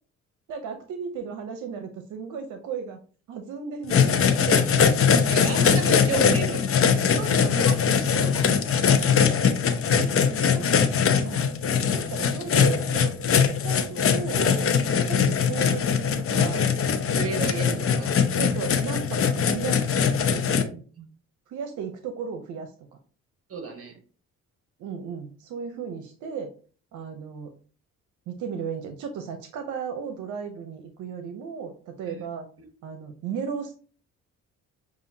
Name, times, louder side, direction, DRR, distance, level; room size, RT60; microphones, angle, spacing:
voice 1, 0.5-3.0 3.3-4.8 6.9-7.7 8.1-8.2 10.0-10.1 10.4-11.5 11.9-14.7 15.1-16.6 18.3-19.9 21.5-22.7 24.8-26.5 26.9-27.5 28.3-32.5 32.8-33.7, right 6 dB, 85° right, 0.7 m, -35 dB
sound 1, 3.9-20.6, left 6 dB, 45° left, 0.7 m, -22 dB
voice 2, 5.3-6.8 7.6-7.8 8.2-8.4 16.5-18.2 20.3-21.1 23.5-24.0 32.1-32.3 32.6-32.7, right 4 dB, 50° right, 1.3 m, -34 dB
6.9 x 2.5 x 2.7 m
cardioid pair, 90°, 30 cm